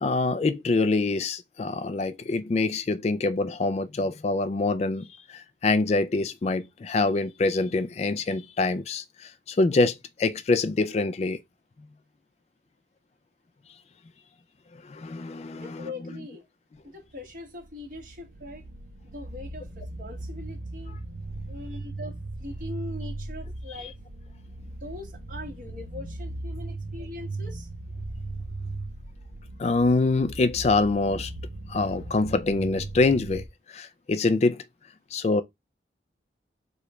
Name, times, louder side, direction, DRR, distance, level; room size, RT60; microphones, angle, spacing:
voice 1, 0.0-11.4 14.9-15.8 23.8-23.9 29.6-31.3 31.7-34.6 35.1-35.4, left 3 dB, 35° left, 0.3 m, -25 dB
voice 2, 15.6-16.4 16.8-18.6 19.0-20.9 21.5-23.9 24.6-27.7, left 2 dB, 45° right, 1.5 m, -41 dB
sound 1, 17.1-33.5, right 2 dB, 60° right, 0.7 m, -38 dB
4.9 x 2.3 x 4.3 m
head